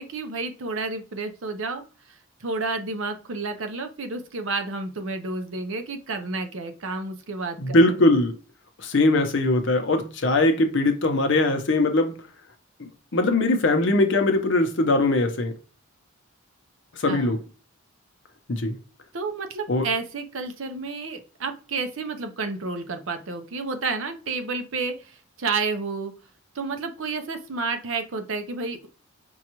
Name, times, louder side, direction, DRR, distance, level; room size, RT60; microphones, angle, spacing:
voice 1, 0.0-1.8 2.4-8.0 17.1-17.3 19.1-26.1 26.5-28.9, right 3 dB, 60° right, 0.6 m, -30 dB
voice 2, 7.6-8.3 8.8-12.2 13.1-15.5 17.0-17.4 18.5-18.7 19.7-19.9, left 2 dB, 55° left, 0.7 m, -21 dB
5.3 x 2.3 x 2.9 m
head